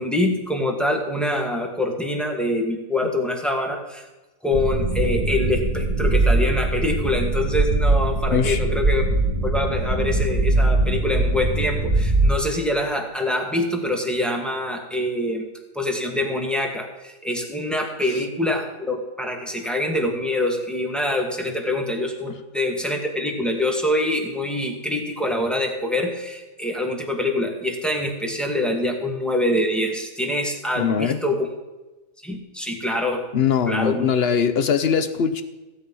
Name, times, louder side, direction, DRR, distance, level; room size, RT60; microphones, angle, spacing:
voice 1, 0.0-4.1 4.4-9.0 9.4-15.4 15.7-31.5 32.2-33.2 33.7-34.0, left 1 dB, ahead, 2 dB, 1.5 m, -25 dB
sound 1, 4.5-12.3, right 2 dB, 15° right, 2.4 m, -21 dB
voice 2, 8.3-8.6 18.1-18.2 30.7-31.2 33.3-35.4, left 7 dB, 55° left, 11 dB, 0.7 m, -21 dB
16.0 x 8.5 x 5.5 m, 1.1 s
omnidirectional pair, 1.8 m